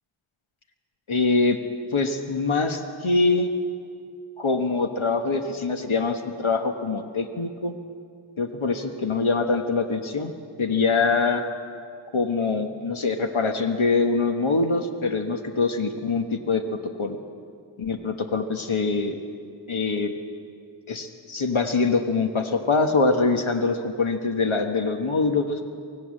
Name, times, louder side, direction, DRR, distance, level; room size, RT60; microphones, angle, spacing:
voice 1, 1.1-1.6 1.9-3.5 4.4-7.7 8.4-10.3 10.6-11.4 12.1-17.2 17.8-19.2 19.7-20.1 20.9-25.6, left 3 dB, 80° left, 5 dB, 1.5 m, -24 dB
24.5 x 17.5 x 7.6 m, 2.3 s
wide cardioid pair, 45°, 48 cm